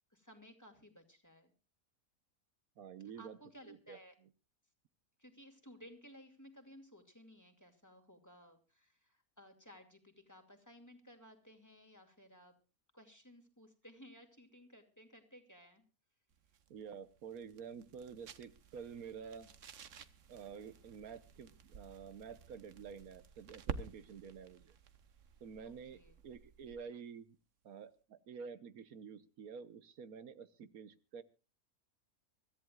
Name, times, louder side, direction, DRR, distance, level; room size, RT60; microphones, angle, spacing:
voice 1, 0.1-1.5 3.2-4.2 5.2-12.5 12.9-15.8 25.6-26.2, equal, 10° left, 4 dB, 2.4 m, -58 dB
voice 2, 2.8-3.4 3.6-4.0 16.7-19.5 20.3-24.7 25.4-26.0 26.2-27.4 27.6-31.2, right 6 dB, 85° right, 12 dB, 1.5 m, -49 dB
sound 1, 16.3-26.9, right 6 dB, 60° right, 1.3 m, -51 dB
25.0 x 14.0 x 2.4 m, 0.32 s
omnidirectional pair, 1.5 m